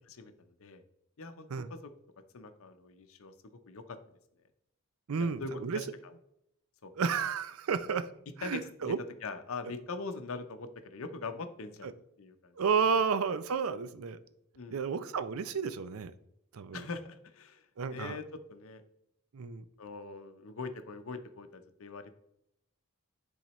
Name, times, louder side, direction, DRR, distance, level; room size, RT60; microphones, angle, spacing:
voice 1, 1.2-1.9 2.3-3.3 3.7-4.0 5.2-5.9 6.8-6.9 8.4-8.9 9.2-12.6 14.6-14.8 16.7-18.8 19.8-22.1, left 3 dB, 70° left, 9 dB, 0.7 m, -42 dB
voice 2, 5.1-5.8 7.0-8.1 8.4-9.0 11.8-11.9 12.6-14.2 14.7-16.1 16.5-16.9 17.8-18.2 19.3-19.6, right 6 dB, 70° right, 13 dB, 0.5 m, -31 dB
10.0 x 3.9 x 3.0 m, 0.79 s
head